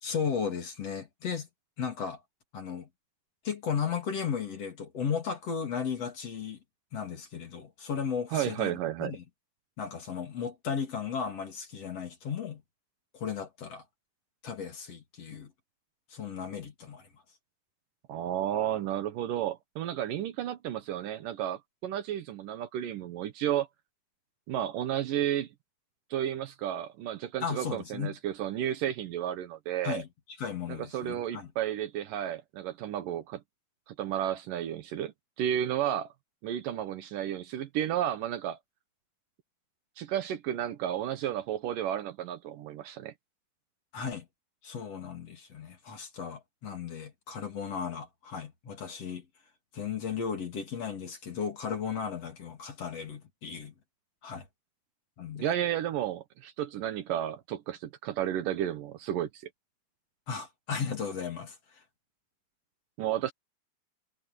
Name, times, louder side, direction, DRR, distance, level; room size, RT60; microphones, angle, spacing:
voice 1, 0.0-1.5 1.8-2.2 2.5-2.9 3.4-6.6 6.9-9.2 9.8-12.6 13.1-13.8 14.4-15.5 16.1-17.1 27.4-28.2 29.8-31.5 43.9-44.3 44.6-49.3 49.7-53.7 54.2-54.5 55.2-55.5 60.3-61.8, left 6 dB, 45° left, 3.5 m, -35 dB
voice 2, 8.3-9.2 18.1-23.7 24.5-25.5 26.1-30.0 30.7-33.4 33.9-35.1 35.4-36.1 36.4-38.6 40.0-43.1 55.4-59.4 63.0-63.3, right 11 dB, 70° right, 2.6 m, -32 dB
omnidirectional pair, 4.3 m